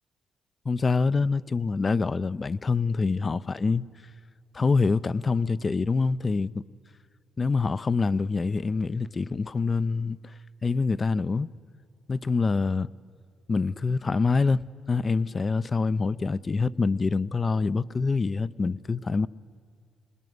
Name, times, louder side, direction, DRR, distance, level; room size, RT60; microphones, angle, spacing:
voice 1, 0.7-3.8 4.5-6.6 7.4-10.3 10.6-11.5 12.1-12.9 13.5-14.6 14.9-19.3, left 4 dB, 35° left, 0.5 m, -25 dB
25.5 x 20.0 x 9.6 m
supercardioid pair, 65°, 0 cm